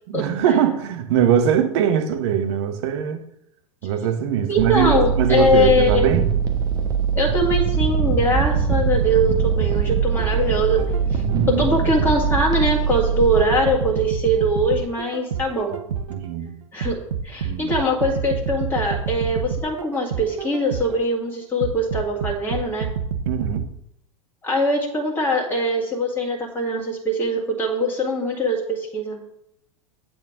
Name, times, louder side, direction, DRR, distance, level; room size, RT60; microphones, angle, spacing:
voice 1, 0.1-3.2 3.8-6.3 11.2-11.6 16.1-16.5 17.4-17.7 23.3-23.7, right 9 dB, 50° right, 1.1 m, -22 dB
voice 2, 4.5-6.1 7.1-10.8 11.1-15.8 16.7-17.0 17.2-22.9 24.4-29.2, equal, 10° left, 1.9 m, -22 dB
sound 1, 4.6-13.5, right 6 dB, 25° right, 1.2 m, -22 dB
sound 2, 7.5-11.5 12.0-16.3 16.8-21.1 21.6-23.7, right 6 dB, 65° right, 0.7 m, -28 dB
8.3 x 6.3 x 3.7 m
figure-of-eight pair, 90°, 18 cm